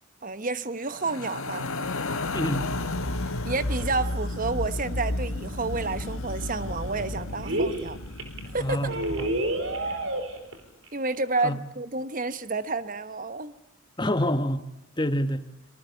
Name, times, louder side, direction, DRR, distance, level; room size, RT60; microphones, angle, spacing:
voice 1, 0.2-1.7 3.4-8.0 8.5-8.8 9.9-10.0 10.9-13.6, right 3 dB, 40° right, 13 dB, 1.1 m, -30 dB
sound 1, 0.9-10.2, left 2 dB, 80° left, 1.5 m, -32 dB
voice 2, 2.3-2.7 8.6-8.9 9.2-9.3 11.4-11.6 14.0-14.6 15.0-15.4, left 1 dB, 20° left, 11 dB, 1.3 m, -26 dB
sound 2, 6.8-7.0 7.4-7.9 8.2-8.4 8.9-10.6 10.9-11.0 11.1-11.3, right 1 dB, 65° right, 4.5 m, -29 dB
24.5 x 23.5 x 8.4 m, 0.86 s
head